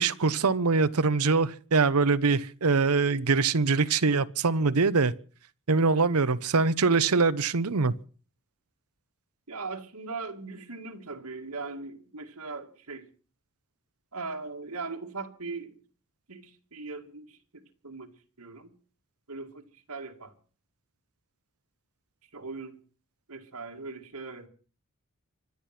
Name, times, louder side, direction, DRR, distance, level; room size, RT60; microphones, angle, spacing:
voice 1, 0.0-5.1 5.7-7.9, right 4 dB, 75° right, 0.9 m, -23 dB
voice 2, 9.5-13.1 14.1-15.8 16.3-18.1 18.4-18.7 19.3-20.3 22.3-22.8 23.3-24.5, right 3 dB, 90° right, 2.2 m, -39 dB
25.5 x 8.5 x 6.0 m
head